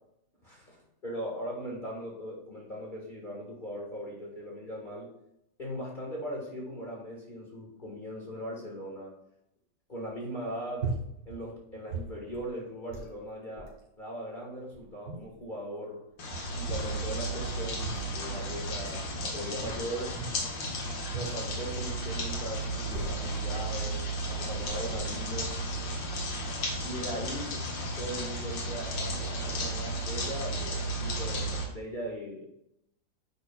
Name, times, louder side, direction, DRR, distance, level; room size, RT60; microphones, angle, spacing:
voice 1, 0.4-5.1 5.6-9.1 9.9-10.9 11.2-16.1 16.5-20.2 21.1-25.6 26.8-27.7 28.0-32.4, equal, 30° left, -3 dB, 1.6 m, -39 dB
sound 1, 10.8-11.4 11.7-12.5 12.9-13.1 13.6-13.8 14.5-15.5 16.1-17.0 17.4-18.2 18.6-18.9 19.6-20.5 21.1-22.0 22.6-23.4 24.1-24.2 24.5-25.0, right 4 dB, 90° right, 2.6 m, -39 dB
sound 2, 16.2-31.6, right 1 dB, 85° left, 2.1 m, -34 dB
9.3 x 6.3 x 2.3 m, 0.80 s
omnidirectional pair, 1.9 m